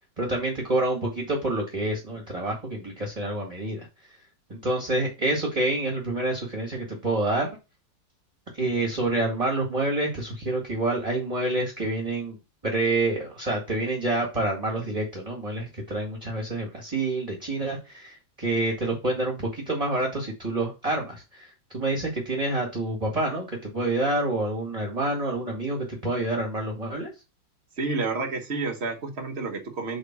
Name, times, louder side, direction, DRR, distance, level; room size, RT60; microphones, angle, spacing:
voice 1, 0.2-3.8 4.5-7.5 8.5-12.4 12.6-27.1, right 2 dB, 20° right, -1 dB, 1.7 m, -27 dB
voice 2, 27.8-30.0, right 3 dB, 40° right, 3 dB, 1.4 m, -30 dB
5.0 x 4.4 x 5.9 m, 0.27 s
omnidirectional pair, 2.0 m